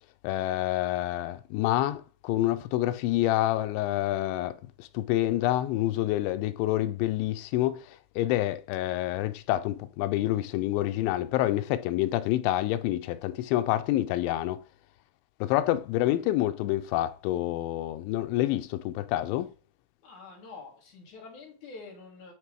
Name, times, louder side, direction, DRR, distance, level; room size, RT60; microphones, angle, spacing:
voice 1, 0.2-7.8 8.2-14.6 15.4-19.5, left 15 dB, 90° left, 2.9 m, -27 dB
voice 2, 20.0-22.3, left 4 dB, 55° left, 2.7 m, -46 dB
9.8 x 3.4 x 4.5 m
omnidirectional pair, 5.1 m